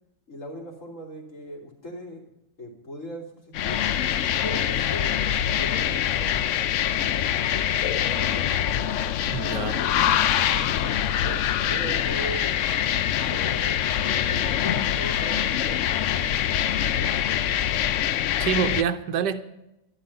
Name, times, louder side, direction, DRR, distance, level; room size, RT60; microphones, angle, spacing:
voice 1, 0.3-2.2 2.6-3.8 4.4-7.2 7.8-8.8 9.5-12.8 13.2-17.8, equal, 45° left, 3.5 m, -40 dB
sound 1, 3.5-18.8, left 10 dB, 85° left, 0.6 m, -24 dB
voice 2, 9.3-9.8 18.4-19.4, right 7 dB, 75° right, 1.4 m, -26 dB
13.0 x 11.5 x 5.6 m
omnidirectional pair, 1.9 m